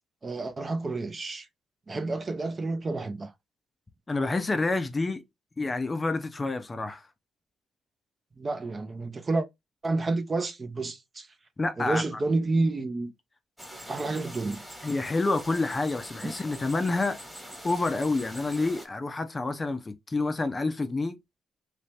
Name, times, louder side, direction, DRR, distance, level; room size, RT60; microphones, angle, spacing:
voice 1, 0.2-1.5 1.9-3.3 8.4-9.5 9.8-11.3 11.8-13.1 13.9-14.6 16.2-16.3, right 3 dB, 30° right, 0.7 m, -29 dB
voice 2, 4.1-5.2 5.6-7.1 11.6-12.0 14.8-17.2 17.6-21.2, left 3 dB, 25° left, 0.6 m, -28 dB
sound 1, 13.6-18.9, equal, ahead, 1.4 m, -44 dB
3.2 x 2.8 x 3.3 m
cardioid pair, 90°, 0 cm